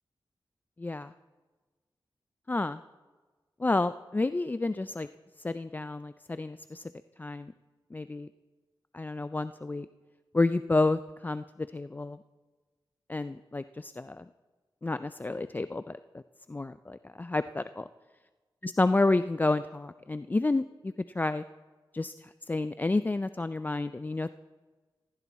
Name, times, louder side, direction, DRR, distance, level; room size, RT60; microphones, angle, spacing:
voice 1, 0.8-1.1 2.5-2.8 3.6-5.1 5.4-6.8 7.2-7.5 7.9-8.3 8.9-9.9 10.3-12.2 13.1-14.2 14.8-16.2 16.5-17.9 18.8-21.4 21.9-24.3, left 2 dB, 20° left, 13 dB, 0.3 m, -30 dB
17.0 x 16.0 x 4.1 m, 1.3 s
wide cardioid pair, 95°, 9 cm